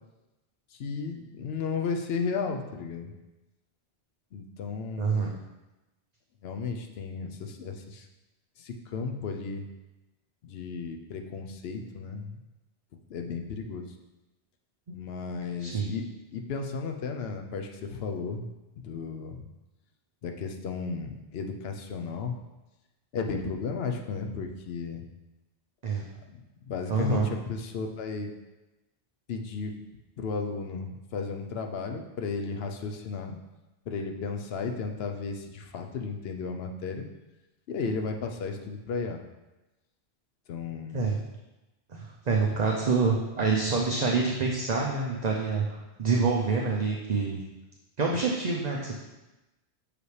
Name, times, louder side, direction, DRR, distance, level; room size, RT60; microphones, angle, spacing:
voice 1, 0.7-3.1 4.3-5.3 6.4-8.1 8.6-9.6 10.4-12.4 13.1-13.9 14.9-16.0 16.3-18.4 18.8-19.5 20.2-22.4 23.1-25.0 26.3-28.3 29.3-29.7 30.2-33.4 33.9-37.1 37.7-39.2 40.5-41.0 42.4-42.7, left 4 dB, 70° left, 4 dB, 0.9 m, -34 dB
voice 2, 5.0-5.3 14.9-15.0 15.6-15.9 25.8-26.0 26.9-27.3 40.9-41.2 41.9-47.4 48.0-48.9, right 4 dB, 45° right, -2 dB, 0.7 m, -27 dB
6.7 x 5.0 x 3.2 m, 1.0 s
omnidirectional pair, 1.1 m